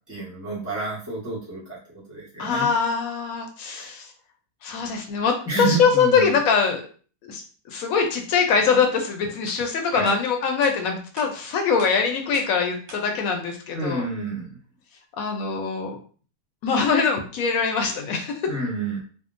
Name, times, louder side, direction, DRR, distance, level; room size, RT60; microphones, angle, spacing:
voice 1, 0.1-1.8 2.1-2.7 3.6-3.9 5.4-6.3 9.9-10.1 13.7-14.5 18.5-19.0, right 2 dB, 15° left, -7 dB, 0.7 m, -29 dB
voice 2, 2.4-4.1 4.6-6.8 7.2-7.4 7.7-14.1 15.2-16.0 16.6-18.4, left 5 dB, 70° left, 4 dB, 0.9 m, -23 dB
sound 1, 9.0-9.1 9.5-9.6 10.1-10.2 10.6-10.8 11.2-11.3 11.8-11.9 12.3-12.5 12.9-13.0, right 3 dB, 85° right, 1.3 m, -42 dB
3.5 x 2.0 x 2.5 m, 0.41 s
omnidirectional pair, 1.6 m